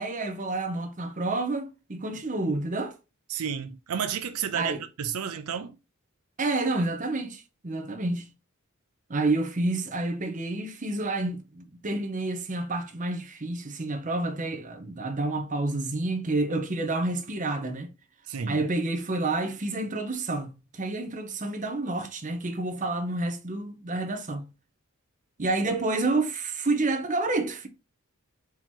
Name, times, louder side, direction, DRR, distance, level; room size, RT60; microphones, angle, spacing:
voice 1, 0.0-2.9 4.5-4.8 6.4-8.3 9.1-17.9 18.5-24.5 25.4-27.7, right 2 dB, 35° right, 0.9 m, -29 dB
voice 2, 3.3-5.8 18.3-18.6, right 7 dB, 85° right, 0.6 m, -31 dB
4.5 x 2.9 x 3.7 m
head